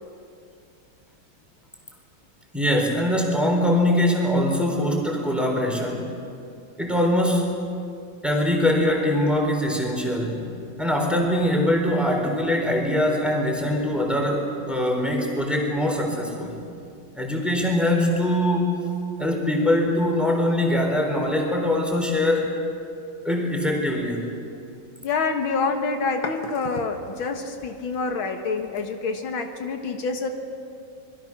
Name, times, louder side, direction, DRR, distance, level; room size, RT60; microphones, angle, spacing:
voice 1, 2.5-6.1 6.8-7.5 8.2-10.5 10.8-16.6 17.1-18.9 19.2-22.6 23.2-24.2, left 1 dB, ahead, 1 dB, 3.9 m, -22 dB
voice 2, 25.0-30.3, left 4 dB, 85° left, 5 dB, 2.2 m, -27 dB
26.5 x 21.5 x 6.0 m, 2.5 s
omnidirectional pair, 2.2 m